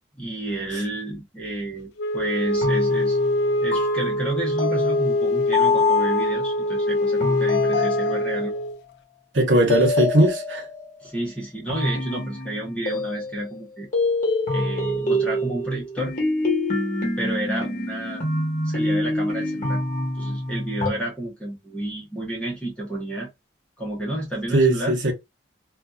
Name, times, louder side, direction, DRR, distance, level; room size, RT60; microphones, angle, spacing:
voice 1, 0.2-3.2 3.6-8.6 11.0-13.9 14.5-16.2 17.2-18.3 18.6-19.8 20.1-23.3 23.8-25.0, right 1 dB, 5° left, 0.8 m, -30 dB
Wind instrument woodwind instrument, 2.0-8.8, left 1 dB, 60° left, 0.3 m, -23 dB
sound 1, 2.6-6.5 7.2-8.7 9.7-10.9 11.7-13.6 13.9-20.9, left 2 dB, 45° left, 1.2 m, -26 dB
voice 2, 9.3-10.6 24.5-25.1, right 1 dB, 75° right, 0.9 m, -19 dB
2.5 x 2.5 x 2.2 m
head